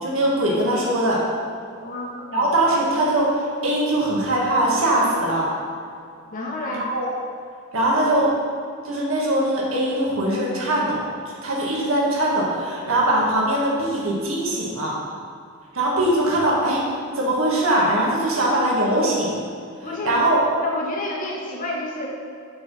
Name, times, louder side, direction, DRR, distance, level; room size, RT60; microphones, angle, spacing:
voice 1, 0.0-1.2 2.3-5.5 6.9-7.1 7.7-8.3 8.8-11.1 11.4-15.0 15.7-16.8 17.1-19.3 20.0-20.4, right 1 dB, 80° right, -4 dB, 1.7 m, -21 dB
voice 2, 1.8-2.5 6.3-6.9 18.4-18.5 19.8-20.2 20.6-22.2, left 1 dB, 40° left, -3 dB, 0.9 m, -30 dB
7.4 x 4.7 x 5.5 m, 2.4 s
head